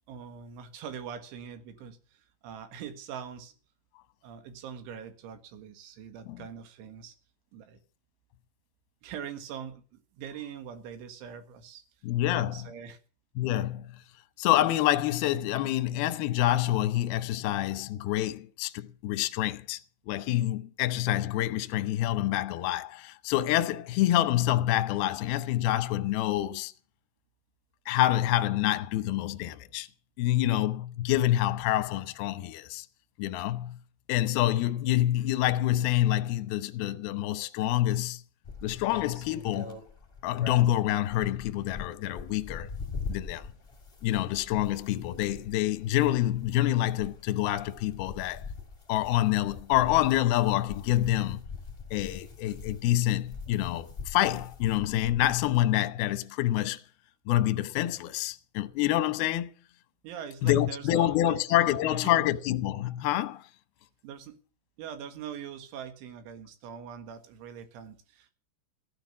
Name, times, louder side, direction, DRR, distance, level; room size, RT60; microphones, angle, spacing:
voice 1, 0.1-3.5 4.2-7.2 7.5-7.8 9.0-11.8 12.2-13.0 60.0-62.3 64.0-64.4 64.8-68.3, right 8 dB, 80° right, 4.1 m, -43 dB
voice 2, 12.0-12.7 13.4-14.0 14.4-19.8 20.1-26.7 27.9-29.9 30.2-32.9 33.2-33.8 34.1-38.2 38.6-39.8 40.2-42.7 43.1-43.5 44.0-48.4 48.9-51.4 51.9-56.8 57.3-59.5 60.4-63.4, left 14 dB, 75° left, 2.4 m, -27 dB
sound 1, 38.4-55.7, left 4 dB, 25° left, 1.2 m, -43 dB
15.5 x 10.5 x 7.2 m
omnidirectional pair, 5.4 m